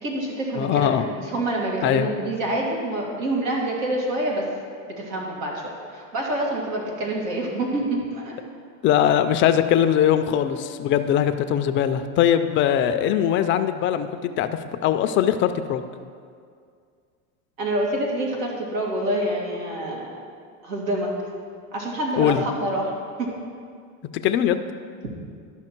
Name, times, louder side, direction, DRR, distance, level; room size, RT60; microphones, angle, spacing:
voice 1, 0.0-4.4 5.0-8.3 17.6-20.1 20.6-21.1 21.7-22.9 23.2-23.3, right 1 dB, 85° right, -2 dB, 2.3 m, -27 dB
voice 2, 0.6-1.0 1.8-2.1 8.8-15.8 22.2-22.4 24.2-24.6, left 10 dB, 30° left, 9 dB, 0.4 m, -21 dB
12.0 x 5.8 x 4.4 m, 2.2 s
supercardioid pair, 125°, 40 cm